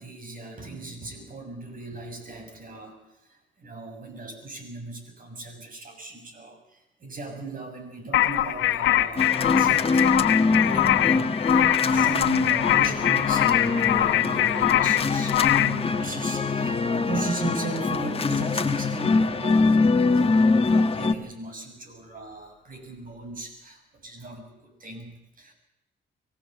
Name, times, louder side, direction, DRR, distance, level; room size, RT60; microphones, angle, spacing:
voice 1, 0.0-25.5, right 3 dB, 45° right, 6 dB, 7.1 m, -38 dB
sound 1, 8.1-15.8, left 13 dB, 80° left, 1.1 m, -23 dB
sound 2, 9.2-21.1, left 3 dB, 30° left, 1.6 m, -23 dB
24.5 x 16.5 x 8.0 m, 0.90 s
cardioid pair, 90°, 20 cm